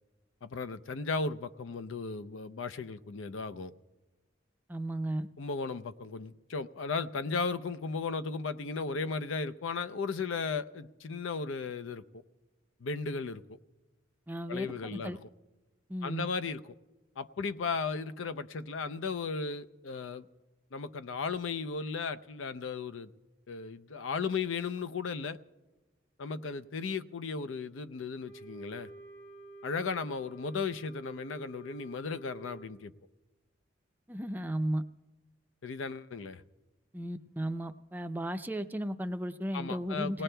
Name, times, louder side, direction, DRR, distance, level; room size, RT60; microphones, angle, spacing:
voice 1, 0.4-3.7 5.4-12.2 12.8-13.4 14.5-15.2 16.0-16.6 17.2-20.3 20.7-23.1 23.5-25.4 26.2-28.9 29.6-32.9 35.6-36.4 39.5-40.2, left 4 dB, 85° left, 0.5 m, -35 dB
voice 2, 4.7-5.3 14.3-15.2 15.9-16.3 34.1-34.8 36.9-40.2, right 1 dB, 10° right, 0.4 m, -35 dB
Wind instrument woodwind instrument, 28.2-32.7, right 2 dB, 70° left, 6.8 m, -50 dB
29.5 x 18.5 x 2.2 m
head